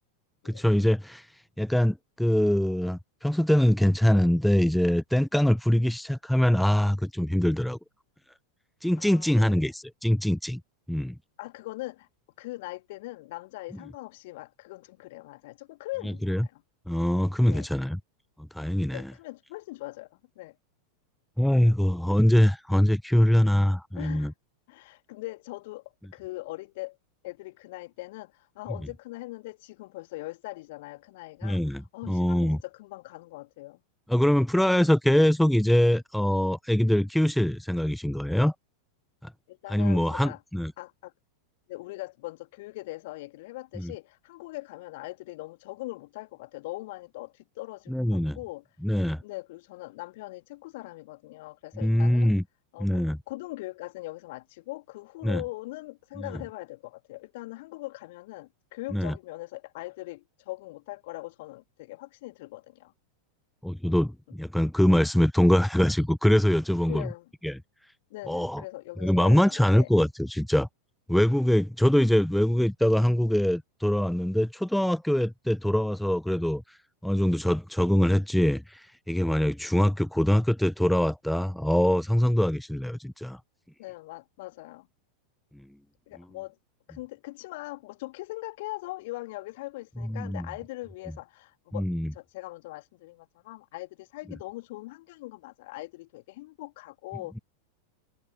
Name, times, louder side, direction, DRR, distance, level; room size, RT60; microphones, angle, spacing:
voice 1, 0.4-1.3 1.6-7.8 8.8-10.6 10.9-11.2 16.2-16.5 16.9-18.0 18.5-19.1 21.4-24.3 31.4-32.6 34.1-38.5 39.2-39.3 39.7-40.7 43.8-43.9 47.9-48.4 48.8-49.2 51.8-52.4 52.8-53.2 55.2-55.4 58.9-59.1 63.6-67.1 67.4-67.6 68.3-68.6 69.0-70.7 71.1-76.6 77.0-83.4 90.0-90.5 91.7-92.1, equal, ahead, 0.7 m, -23 dB
voice 2, 9.0-9.7 11.4-12.1 12.4-16.6 17.5-17.7 18.9-20.5 24.0-24.3 24.7-27.0 27.2-33.8 39.5-40.4 40.8-41.1 41.7-48.6 49.2-52.3 52.7-62.9 66.8-67.3 68.1-69.9 83.8-84.9 86.1-86.6 86.9-97.3, left 20 dB, 50° left, 1.9 m, -41 dB
figure-of-eight pair, 90°, 0 cm